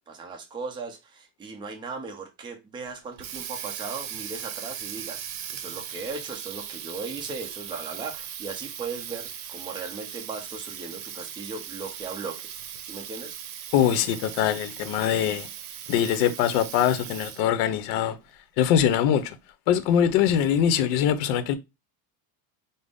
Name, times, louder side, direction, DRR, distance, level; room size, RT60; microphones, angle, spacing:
voice 1, 0.1-5.2 5.5-12.5 12.8-13.4, right 4 dB, 10° right, 0.5 m, -37 dB
Water tap faucet, 2.9-17.6, right 9 dB, 75° right, 0.7 m, -38 dB
voice 2, 13.7-15.5 15.9-18.2 18.6-19.4 19.7-21.6, left 9 dB, 65° left, 0.7 m, -23 dB
3.7 x 2.0 x 3.4 m
cardioid pair, 140°, 44 cm